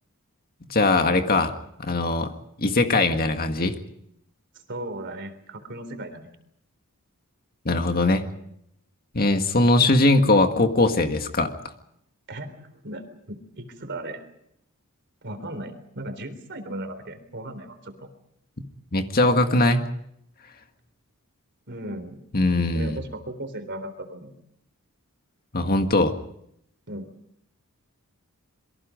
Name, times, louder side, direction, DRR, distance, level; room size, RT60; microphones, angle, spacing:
voice 1, 0.7-1.5 1.8-2.3 2.6-3.7 7.7-8.2 9.1-11.5 18.9-19.8 22.3-23.0 25.5-26.1, left 2 dB, 45° left, 6 dB, 1.8 m, -20 dB
voice 2, 4.7-6.3 12.3-14.2 15.2-18.1 21.7-22.2 22.7-24.3 26.9-27.1, right 1 dB, 55° right, 9 dB, 3.7 m, -36 dB
27.0 x 23.0 x 5.2 m, 0.75 s
head